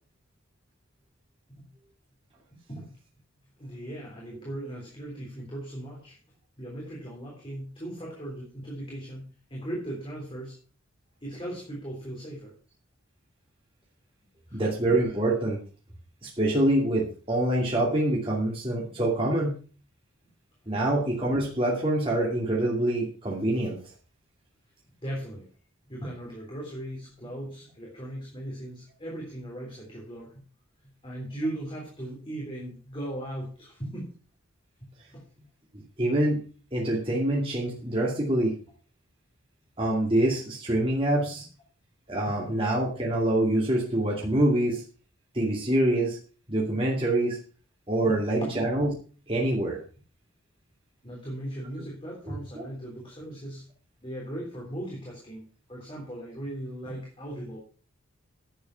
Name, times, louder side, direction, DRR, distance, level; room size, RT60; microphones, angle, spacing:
voice 1, 3.6-6.2 6.6-10.6 11.2-12.5 14.5-14.6 25.0-25.5 25.9-30.4 31.0-34.1 35.1-35.2 41.2-41.3 42.3-42.5 48.0-48.6 51.0-53.7 54.0-57.6, right 1 dB, 25° left, -3 dB, 3.6 m, -38 dB
voice 2, 14.5-15.6 16.2-19.6 20.7-23.8 36.0-36.4 36.7-38.5 39.8-41.4 42.1-44.8 45.3-46.2 46.5-47.4 47.9-48.9 49.3-49.8 52.3-52.6, right 1 dB, 25° right, -4 dB, 2.5 m, -25 dB
11.0 x 8.6 x 5.8 m, 0.39 s
head